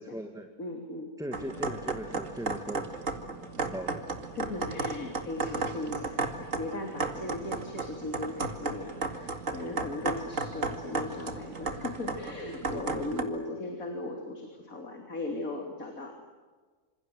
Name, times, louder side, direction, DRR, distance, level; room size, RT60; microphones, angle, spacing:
voice 1, 0.0-0.5 1.2-4.0, equal, 5° right, 5 dB, 2.0 m, -40 dB
voice 2, 0.6-1.1 4.3-16.3, left 2 dB, 85° left, 3 dB, 3.8 m, -38 dB
sound 1, 1.3-13.2, right 3 dB, 70° right, 2.6 m, -34 dB
27.5 x 27.0 x 8.0 m, 1.4 s
omnidirectional pair, 1.4 m